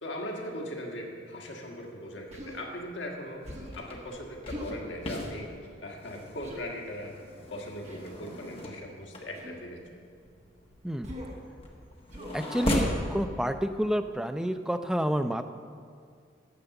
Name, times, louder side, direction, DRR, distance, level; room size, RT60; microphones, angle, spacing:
voice 1, 0.0-3.4 3.7-5.5 5.8-7.2 7.5-10.1, left 1 dB, 75° left, 0 dB, 1.6 m, -39 dB
Human voice, 2.3-2.6 3.4-3.8 4.4-4.8 6.4-6.6 7.8-8.1 9.3-9.6 11.0-11.4 12.1-12.4 12.7-13.0, equal, 35° right, 1.4 m, -41 dB
sound 1, 3.4-13.1, left 1 dB, 30° left, 1.2 m, -37 dB
voice 2, 12.3-15.4, equal, 5° right, 8 dB, 0.3 m, -29 dB
10.0 x 6.8 x 7.0 m, 2.2 s
head